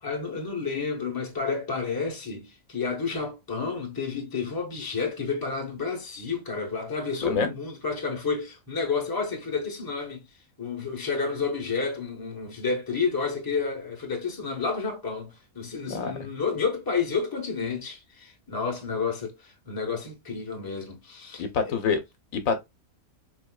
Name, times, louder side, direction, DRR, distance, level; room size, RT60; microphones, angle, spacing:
voice 1, 0.0-10.2 10.6-21.7, left 5 dB, 20° left, 0.9 m, -30 dB
voice 2, 21.4-22.0 22.3-22.6, left 5 dB, 75° left, 1.1 m, -26 dB
4.3 x 2.7 x 2.2 m
omnidirectional pair, 1.4 m